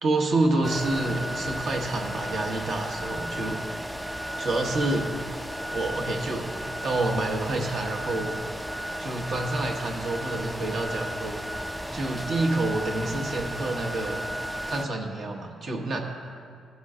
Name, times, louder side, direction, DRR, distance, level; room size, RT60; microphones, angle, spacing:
voice 1, 0.0-3.9 4.4-5.1 5.7-8.4 9.0-14.3 14.7-16.0, right 2 dB, 60° right, 1 dB, 1.2 m, -28 dB
sound 1, 0.6-14.9, equal, 5° right, 0.4 m, -34 dB
15.5 x 5.6 x 3.7 m, 2.3 s
cardioid pair, 100°, 0 cm